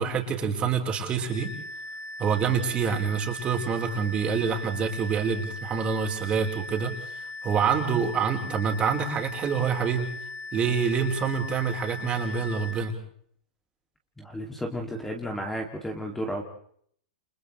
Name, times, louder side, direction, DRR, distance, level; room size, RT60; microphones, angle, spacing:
voice 1, 0.0-1.5 2.2-10.1 10.5-12.9, right 6 dB, 25° right, 2 dB, 4.6 m, -26 dB
sound 1, 1.3-12.7, left 2 dB, 50° left, 6.1 m, -39 dB
voice 2, 14.2-16.4, equal, 5° left, 1 dB, 2.7 m, -33 dB
30.0 x 29.5 x 3.4 m, 0.62 s
hypercardioid pair, 120°, 4 cm